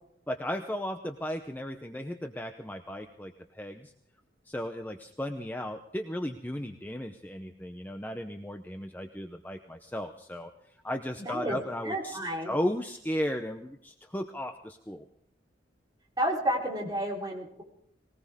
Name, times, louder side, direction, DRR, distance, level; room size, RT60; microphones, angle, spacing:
voice 1, 0.3-3.9 4.5-10.5 10.8-12.2 12.5-15.1, equal, 10° left, 5 dB, 0.7 m, -35 dB
voice 2, 11.2-11.6 11.8-12.5 16.2-17.6, right 1 dB, 20° right, -2 dB, 3.8 m, -31 dB
20.0 x 19.0 x 3.6 m, 0.74 s
head